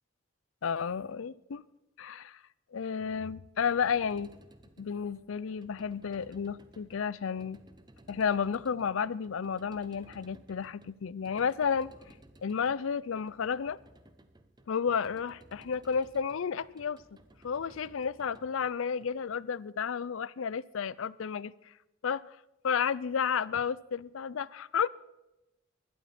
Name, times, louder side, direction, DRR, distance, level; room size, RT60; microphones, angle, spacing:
voice 1, 0.6-1.6 2.0-2.4 2.7-4.3 4.8-7.6 8.1-11.9 12.4-13.8 14.7-17.0 17.4-21.5 22.0-22.2 22.6-24.9, left 6 dB, 80° left, 0.5 m, -32 dB
sound 1, 3.4-19.6, right 1 dB, 20° right, 0.9 m, -58 dB
20.0 x 12.0 x 4.3 m
head